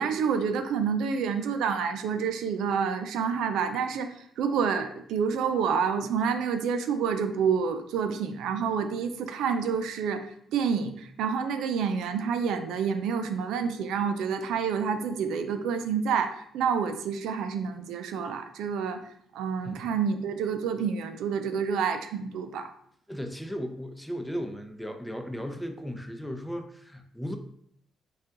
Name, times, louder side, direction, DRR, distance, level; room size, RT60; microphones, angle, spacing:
voice 1, 0.0-19.0 19.3-22.7, right 6 dB, 85° right, 8 dB, 0.4 m, -28 dB
voice 2, 23.1-27.4, equal, 5° left, 5 dB, 0.6 m, -36 dB
5.4 x 2.4 x 3.7 m, 0.67 s
cardioid pair, 90°, 0 cm